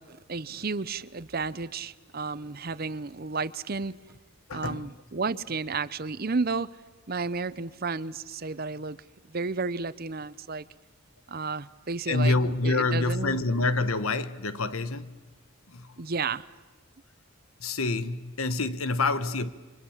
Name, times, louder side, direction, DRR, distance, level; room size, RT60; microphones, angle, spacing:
voice 1, 0.0-3.9 4.5-6.7 7.1-9.0 9.3-10.6 11.3-13.4 16.0-16.5, right 4 dB, 45° right, 0.8 m, -32 dB
voice 2, 4.5-4.9 12.1-15.2 15.7-16.0 17.6-19.5, left 3 dB, 75° left, 1.3 m, -27 dB
29.5 x 24.5 x 7.3 m
head